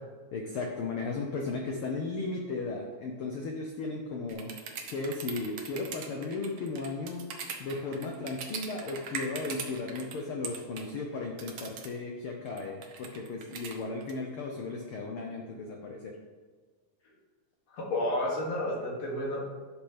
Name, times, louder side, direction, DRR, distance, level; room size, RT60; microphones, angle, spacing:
voice 1, 0.3-4.5 4.9-7.3 7.6-16.2, left 3 dB, 85° left, 1 dB, 1.2 m, -35 dB
sound 1, 4.3-10.1 10.4-10.9 11.4-11.9 12.5-14.1, right 6 dB, 70° right, 1.2 m, -40 dB
voice 2, 17.7-19.4, left 1 dB, 60° left, -4 dB, 3.3 m, -31 dB
11.5 x 6.5 x 3.3 m, 1.5 s
omnidirectional pair, 3.6 m